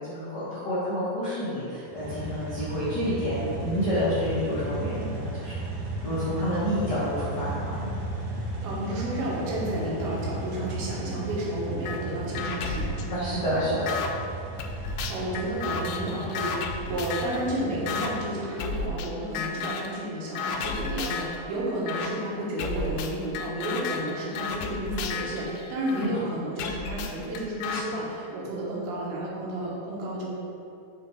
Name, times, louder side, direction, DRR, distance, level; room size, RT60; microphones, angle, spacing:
voice 1, 0.0-5.6 6.0-7.9 13.1-13.9, equal, 65° left, -12 dB, 1.0 m, -29 dB
sound 1, 1.9-18.6, right 2 dB, 60° right, 2.1 m, -35 dB
voice 2, 8.6-13.0 15.1-30.3, right 1 dB, 85° right, -5 dB, 3.1 m, -32 dB
sound 2, 11.9-12.0 12.4-14.1 14.6-17.4 17.9-18.1 18.6-19.1 19.4-19.9 20.4-21.4 21.9-22.1 22.6-26.1 26.6-27.8, left 5 dB, 80° left, 2.3 m, -33 dB
6.4 x 5.4 x 3.5 m, 2.7 s
omnidirectional pair, 4.4 m